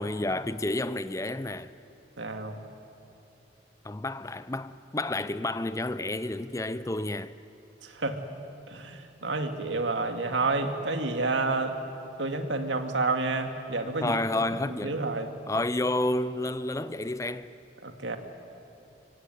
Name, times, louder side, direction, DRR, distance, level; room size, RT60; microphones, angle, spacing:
voice 1, 0.0-1.7 3.8-7.3 14.0-15.0 15.5-17.5, left 2 dB, 15° left, 0.5 m, -30 dB
voice 2, 2.2-2.6 7.8-8.2 8.7-11.8 12.2-14.2 14.6-15.3 17.8-18.2, right 3 dB, 90° right, 2.1 m, -29 dB
24.5 x 24.5 x 9.5 m
head